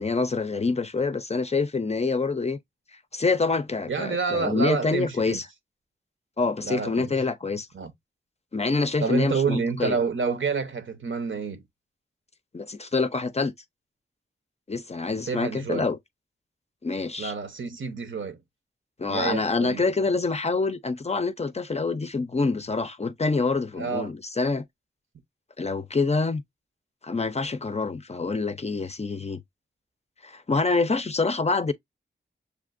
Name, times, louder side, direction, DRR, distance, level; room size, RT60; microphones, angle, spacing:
voice 1, 0.0-2.6 3.1-5.5 6.4-7.7 8.5-10.0 12.5-13.5 14.7-16.0 16.8-17.3 19.0-24.7 25.6-26.4 27.0-29.4 30.2-31.7, left 3 dB, 35° left, 0.4 m, -26 dB
voice 2, 3.9-5.4 6.6-7.1 7.7-7.9 9.0-11.6 15.3-15.9 17.2-18.4 19.1-19.9 23.8-24.1, right 5 dB, 75° right, 0.8 m, -28 dB
6.7 x 2.5 x 2.4 m
wide cardioid pair, 55°, 20 cm